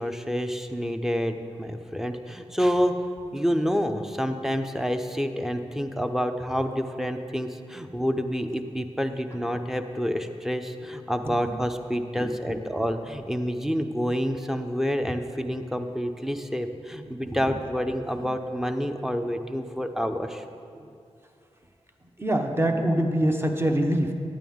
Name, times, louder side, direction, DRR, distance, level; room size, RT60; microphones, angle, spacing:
voice 1, 0.0-3.0 3.3-20.4, equal, 5° right, 7 dB, 0.6 m, -28 dB
voice 2, 11.2-11.6 11.9-12.6 17.0-17.5 18.1-18.3 20.7-20.9 22.2-24.1, right 1 dB, 20° right, 3 dB, 1.0 m, -26 dB
9.3 x 8.8 x 3.6 m, 2.4 s
cardioid pair, 40°, 12 cm